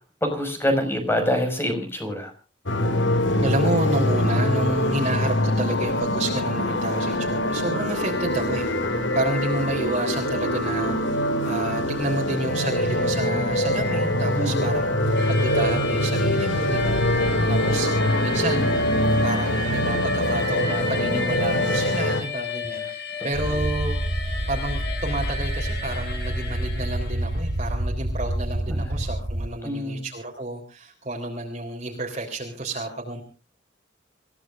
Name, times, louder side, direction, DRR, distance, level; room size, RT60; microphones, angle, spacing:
voice 1, 0.2-2.3 8.9-9.2 14.4-14.7 23.5-23.6 28.7-29.0 29.6-30.1, equal, 15° left, 6 dB, 5.3 m, -26 dB
sound 1, 2.7-22.2, left 1 dB, 85° left, 2.5 m, -23 dB
voice 2, 3.4-17.9 18.2-18.8 19.2-22.9 23.2-24.0 24.5-33.2, right 2 dB, 40° right, 0 dB, 3.6 m, -30 dB
sound 2, 15.1-27.5, left 4 dB, 60° left, 6.8 m, -33 dB
sound 3, 23.3-29.5, right 1 dB, 60° right, 2.5 m, -28 dB
27.5 x 16.0 x 2.5 m, 0.34 s
head